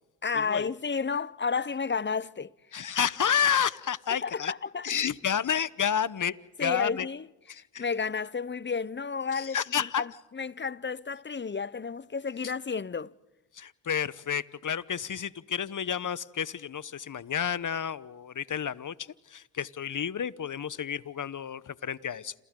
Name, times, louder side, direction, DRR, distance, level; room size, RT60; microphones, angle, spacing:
voice 1, 0.2-2.5 4.1-4.9 6.6-13.1, left 5 dB, 25° left, 0.7 m, -32 dB
voice 2, 2.7-4.5 4.8-6.3 6.6-7.1 7.5-7.8 9.3-10.0 13.6-18.9 19.3-22.3, left 8 dB, 40° left, 1.0 m, -30 dB
28.5 x 28.0 x 3.8 m
supercardioid pair, 45°, 45 cm